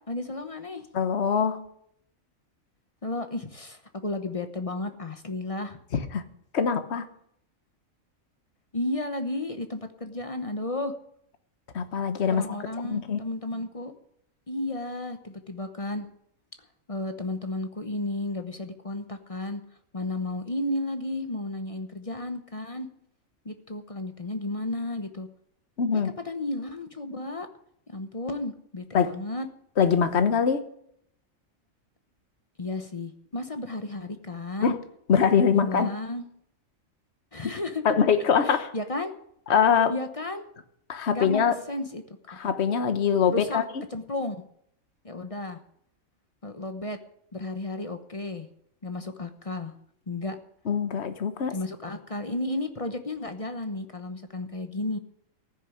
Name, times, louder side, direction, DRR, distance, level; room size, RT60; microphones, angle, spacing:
voice 1, 0.1-0.9 3.0-5.8 8.7-10.9 12.3-13.9 14.5-16.1 16.9-19.6 19.9-22.9 23.4-25.3 26.2-27.5 27.9-29.5 32.6-34.8 35.5-36.2 37.3-37.8 38.7-39.1 39.9-40.5 41.1-42.0 43.3-43.6 43.9-44.4 45.0-45.6 46.4-47.0 47.3-48.5 48.8-49.7 50.1-50.4 51.5-55.0, left 2 dB, 30° left, 7 dB, 0.9 m, -33 dB
voice 2, 0.9-1.6 6.1-6.2 6.5-7.0 11.7-12.5 12.8-13.2 25.8-26.1 28.9-29.2 29.8-30.6 34.6-34.8 35.1-35.9 37.8-38.7 39.5-39.9 40.9-41.6 42.3-43.6 50.7-51.6, left 6 dB, 55° left, 10 dB, 1.3 m, -23 dB
15.0 x 6.8 x 10.0 m, 0.71 s
omnidirectional pair, 1.4 m